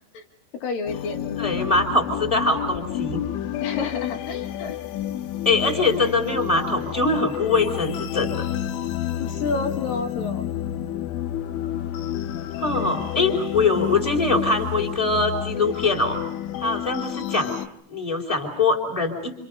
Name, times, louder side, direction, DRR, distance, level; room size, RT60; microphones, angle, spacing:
voice 1, 0.6-1.4 3.6-4.8 5.9-6.1 9.2-10.5, left 4 dB, 55° left, 4 dB, 3.0 m, -29 dB
sound 1, 0.9-17.7, left 11 dB, 75° left, 3.5 m, -30 dB
voice 2, 1.4-3.2 5.4-8.5 12.6-16.2 16.6-17.5 17.9-19.3, left 3 dB, 5° left, 2 dB, 3.7 m, -23 dB
29.5 x 27.0 x 5.5 m, 0.72 s
omnidirectional pair, 5.8 m